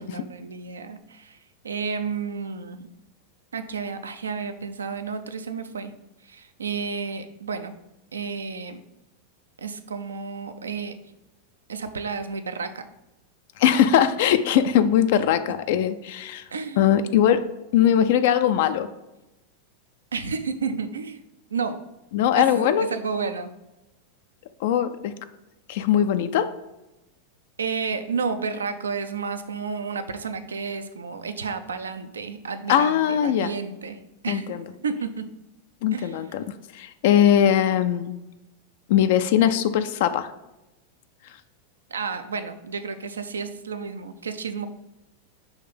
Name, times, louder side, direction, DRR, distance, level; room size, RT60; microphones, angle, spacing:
voice 1, 0.0-1.4 1.6-2.9 3.5-5.9 6.2-7.7 8.1-8.8 9.6-10.9 11.7-12.9 16.5-16.8 20.1-21.2 21.5-21.8 22.4-23.5 27.6-35.3 35.9-36.2 41.9-44.7, right 5 dB, 70° right, 9 dB, 0.5 m, -31 dB
voice 2, 13.6-16.4 16.8-17.4 17.7-18.9 22.1-22.9 24.6-25.1 25.7-26.5 32.7-33.5 34.3-34.6 35.8-36.4 36.7-38.2 38.9-40.3, left 9 dB, 50° left, 10 dB, 0.4 m, -20 dB
5.7 x 3.3 x 5.7 m, 0.96 s
figure-of-eight pair, 90°, 0 cm